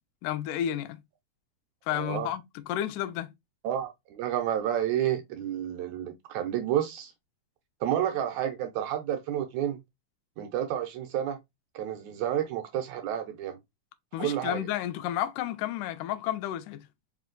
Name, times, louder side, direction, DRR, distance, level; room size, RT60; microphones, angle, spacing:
voice 1, 0.2-1.0 1.9-3.3 14.1-16.9, left 12 dB, 85° left, 2.1 m, -31 dB
voice 2, 1.9-2.3 3.6-7.1 7.8-9.8 10.4-11.4 11.8-13.6 14.2-14.6, right 10 dB, 75° right, 1.8 m, -30 dB
5.0 x 2.2 x 3.8 m
omnidirectional pair, 3.6 m